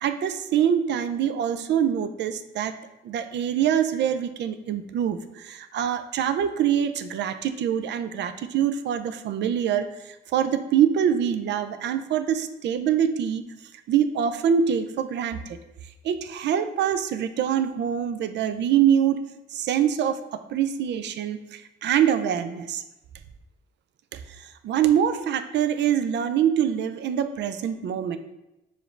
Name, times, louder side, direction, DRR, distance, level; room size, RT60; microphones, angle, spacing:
voice 1, 0.0-2.7 3.0-13.4 13.9-15.6 16.0-19.2 19.5-22.8 24.1-28.2, right 9 dB, 65° right, 9 dB, 0.4 m, -24 dB
4.9 x 2.6 x 3.2 m, 0.93 s
cardioid pair, 90°, 20 cm